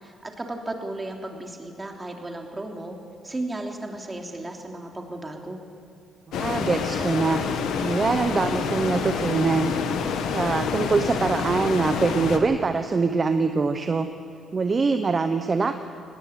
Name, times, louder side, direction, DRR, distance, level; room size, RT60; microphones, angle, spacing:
voice 1, 0.0-3.0 3.2-5.7, right 2 dB, 20° right, 2 dB, 3.1 m, -34 dB
sound 1, 6.3-12.4, left 6 dB, 80° left, 1.8 m, -27 dB
voice 2, 6.3-7.4 7.8-10.0 10.3-14.1 14.5-15.7, right 4 dB, 35° right, 8 dB, 1.0 m, -23 dB
19.0 x 18.5 x 8.2 m, 2.4 s
cardioid pair, 90°, 0 cm